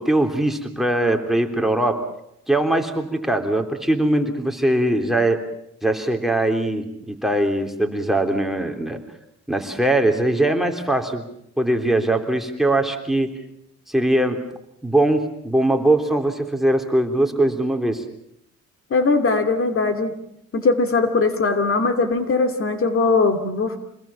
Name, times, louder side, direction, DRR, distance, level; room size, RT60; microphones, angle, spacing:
voice 1, 0.0-2.0 2.5-5.4 5.8-9.0 9.5-11.2 11.6-13.3 13.9-14.4 14.8-18.0, right 1 dB, ahead, 6 dB, 3.3 m, -21 dB
voice 2, 18.9-20.1 20.5-23.8, left 3 dB, 45° left, 7 dB, 2.6 m, -20 dB
27.5 x 21.0 x 7.2 m, 0.77 s
cardioid pair, 90°, 30 cm